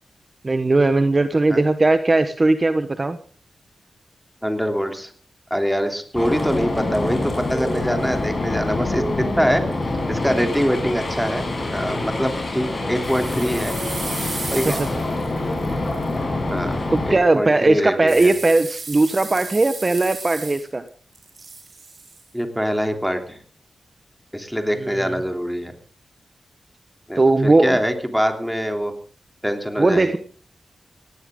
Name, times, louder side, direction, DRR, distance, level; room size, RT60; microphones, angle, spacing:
voice 1, 0.4-3.2 14.5-15.0 16.9-20.8 24.7-25.2 27.1-27.8 29.8-30.2, right 2 dB, 30° right, 10 dB, 1.1 m, -18 dB
voice 2, 4.4-5.1 5.5-9.0 9.4-9.6 10.1-11.4 11.7-13.7 14.5-14.8 16.5-16.8 17.1-18.3 22.3-23.4 24.3-25.7 27.1-28.9 29.4-30.1, equal, ahead, 5 dB, 3.1 m, -24 dB
sound 1, 6.1-17.1, left 2 dB, 40° left, 6.2 m, -26 dB
sound 2, 13.0-16.1 18.1-20.9 21.1-22.2, right 4 dB, 50° right, 5.2 m, -34 dB
18.5 x 18.0 x 3.8 m, 0.41 s
wide cardioid pair, 95°, 0 cm